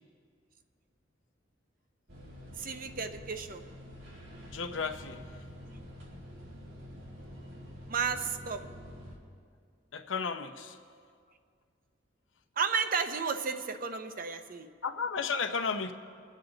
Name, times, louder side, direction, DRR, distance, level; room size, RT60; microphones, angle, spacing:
sound 1, 2.1-9.2, equal, 90° right, 2.6 m, -47 dB
voice 1, 2.6-3.7 7.9-8.7 12.6-14.7, right 5 dB, 45° right, 8 dB, 0.7 m, -33 dB
voice 2, 4.5-5.2 9.9-10.8 14.8-15.9, left 5 dB, 80° left, 6 dB, 0.8 m, -33 dB
24.0 x 8.4 x 3.9 m, 2.1 s
head